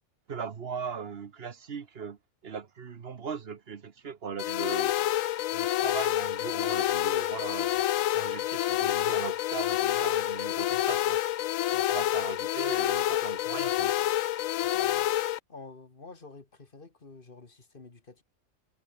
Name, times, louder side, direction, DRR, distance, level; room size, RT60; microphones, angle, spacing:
voice 1, 0.3-2.2 2.4-4.9 5.5-7.8 8.1-11.2 11.9-13.9, right 6 dB, 50° right, 1.2 m, -39 dB
sound 1, 4.4-15.4, left 13 dB, 75° left, 1.0 m, -28 dB
voice 2, 14.6-15.1 15.5-18.2, left 3 dB, 40° left, 2.2 m, -48 dB
omnidirectional pair, 1.4 m